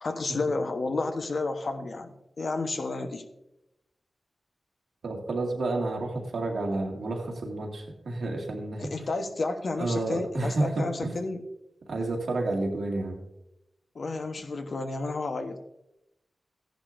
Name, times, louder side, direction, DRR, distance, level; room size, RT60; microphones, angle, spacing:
voice 1, 0.0-3.2 8.8-11.4 13.9-15.6, left 3 dB, 65° left, 6 dB, 1.0 m, -31 dB
voice 2, 5.0-9.1 9.8-11.2 11.9-13.2, right 2 dB, 90° right, 0 dB, 2.0 m, -30 dB
14.5 x 10.5 x 2.6 m, 0.90 s
wide cardioid pair, 80°, 0 cm